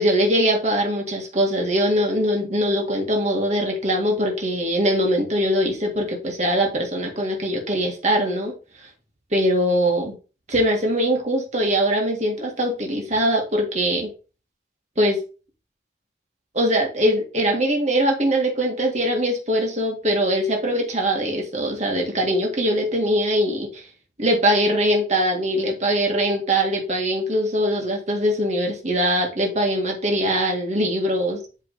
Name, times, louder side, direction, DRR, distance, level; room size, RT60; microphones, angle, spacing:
voice 1, 0.0-8.9 9.3-10.2 10.5-14.1 15.0-15.2 16.5-23.9 24.2-31.4, equal, 40° right, 1 dB, 1.8 m, -22 dB
8.2 x 3.8 x 3.9 m, 0.34 s
head